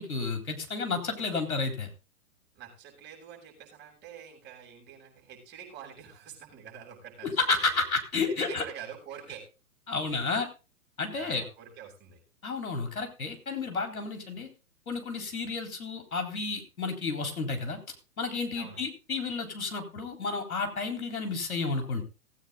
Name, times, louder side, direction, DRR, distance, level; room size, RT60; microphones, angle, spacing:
voice 1, 0.0-1.9 7.4-8.6 9.9-10.5 11.0-11.4 12.4-14.5 14.9-17.8 18.2-22.0, left 4 dB, 75° left, 5 dB, 4.0 m, -31 dB
voice 2, 2.5-7.6 8.3-9.4 11.1-12.2 18.6-18.8, right 8 dB, 25° right, -1 dB, 7.3 m, -46 dB
18.5 x 9.0 x 3.9 m, 0.31 s
figure-of-eight pair, 120°, 43 cm